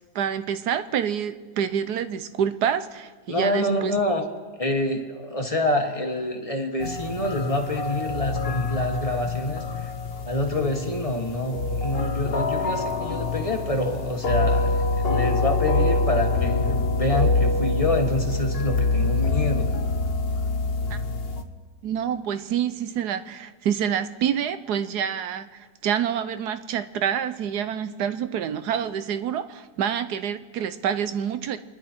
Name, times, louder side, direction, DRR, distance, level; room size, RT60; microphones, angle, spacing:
voice 1, 0.1-3.9 20.9-21.0 21.8-31.6, right 8 dB, 75° right, 11 dB, 1.3 m, -27 dB
voice 2, 3.3-4.2 4.6-9.9 10.2-19.7, left 1 dB, 20° left, 2 dB, 1.4 m, -27 dB
sound 1, 6.8-21.4, left 3 dB, 45° left, 1.0 m, -25 dB
29.0 x 11.0 x 4.5 m, 1.5 s
omnidirectional pair, 1.8 m